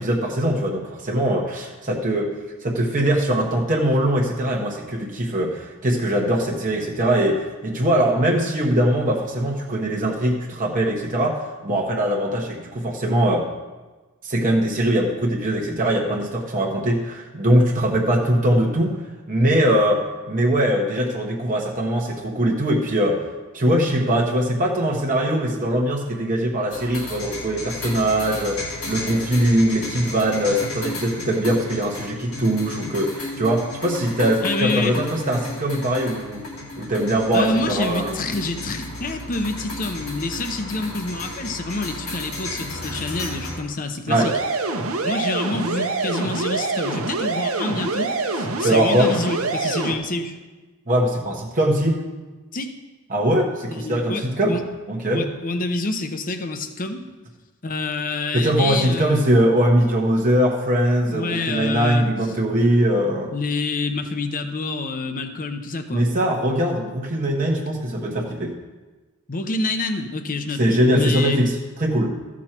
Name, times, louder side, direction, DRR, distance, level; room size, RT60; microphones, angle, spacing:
voice 1, 0.0-2.3 2.6-13.5 14.2-19.0 19.3-23.2 23.5-36.4 36.8-38.2 44.1-44.3 48.6-49.1 50.9-52.0 53.1-54.6 54.9-55.3 58.3-63.3 65.9-68.5 70.6-72.2, right 1 dB, 35° right, -1 dB, 1.0 m, -21 dB
sound 1, 26.7-43.6, left 2 dB, 70° left, 2.0 m, -34 dB
voice 2, 34.4-35.0 37.3-44.3 45.0-50.4 52.5-52.8 53.7-54.6 55.1-57.1 57.6-59.3 61.1-62.0 63.3-66.1 69.3-70.6 70.9-71.4, left 3 dB, 40° left, 7 dB, 0.8 m, -27 dB
sound 2, 44.1-49.9, right 3 dB, 70° right, 0.9 m, -25 dB
14.0 x 6.2 x 4.4 m, 1.2 s
head